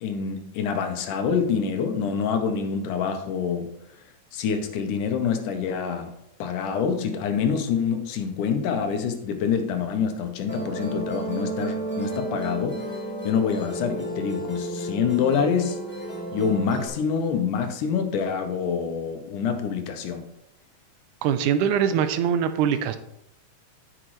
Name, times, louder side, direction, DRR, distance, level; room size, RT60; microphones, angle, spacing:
voice 1, 0.0-3.7 4.3-6.1 6.4-12.8 13.2-15.8 16.3-20.2, left 6 dB, 80° left, 6 dB, 2.4 m, -26 dB
Musical instrument, 10.5-16.9, right 1 dB, 15° left, 0.3 m, -32 dB
voice 2, 21.2-23.0, right 8 dB, 80° right, 11 dB, 2.0 m, -22 dB
10.0 x 7.4 x 3.1 m, 0.79 s
omnidirectional pair, 3.7 m